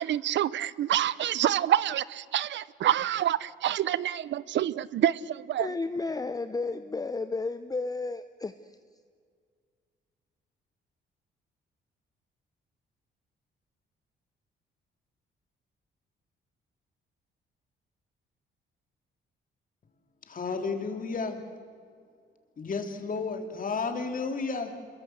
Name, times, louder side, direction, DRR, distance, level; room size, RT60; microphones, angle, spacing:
voice 1, 0.0-5.7, right 11 dB, 65° right, 20 dB, 0.7 m, -27 dB
voice 2, 5.6-8.7, left 3 dB, 20° left, 11 dB, 0.8 m, -32 dB
voice 3, 20.3-21.4 22.6-24.8, left 4 dB, 45° left, 5 dB, 3.1 m, -32 dB
26.5 x 22.0 x 7.9 m, 2.1 s
cardioid pair, 90°, 20 cm